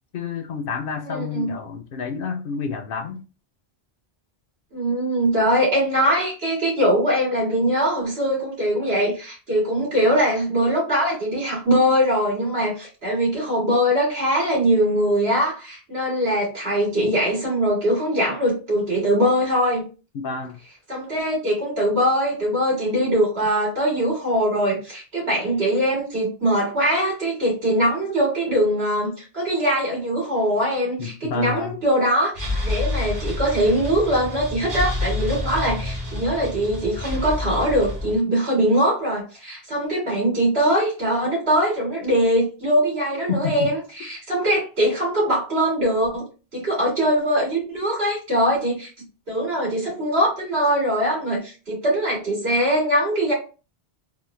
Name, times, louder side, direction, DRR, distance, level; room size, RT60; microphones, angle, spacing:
voice 1, 0.1-3.2 20.1-20.6 31.0-31.8 43.3-43.7, left 5 dB, 65° left, 0.7 m, -29 dB
voice 2, 1.0-1.5 4.7-19.8 20.9-46.3 46.5-48.9 49.3-53.3, equal, 75° right, 2.3 m, -22 dB
sound 1, 32.3-38.2, left 2 dB, 55° right, 1.4 m, -28 dB
4.1 x 2.1 x 3.1 m
omnidirectional pair, 1.1 m